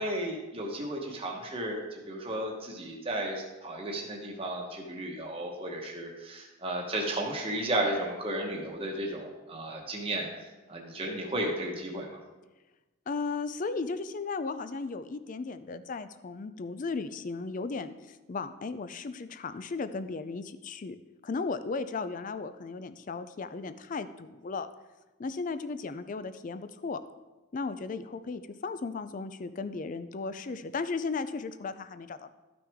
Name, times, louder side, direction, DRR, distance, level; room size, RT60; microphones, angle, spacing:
voice 1, 0.0-12.2, right 1 dB, 25° right, -1 dB, 1.1 m, -34 dB
voice 2, 13.1-21.0 21.2-24.7 25.2-27.0 27.5-32.3, left 4 dB, 40° left, 12 dB, 0.4 m, -35 dB
12.5 x 6.0 x 3.5 m, 1.1 s
head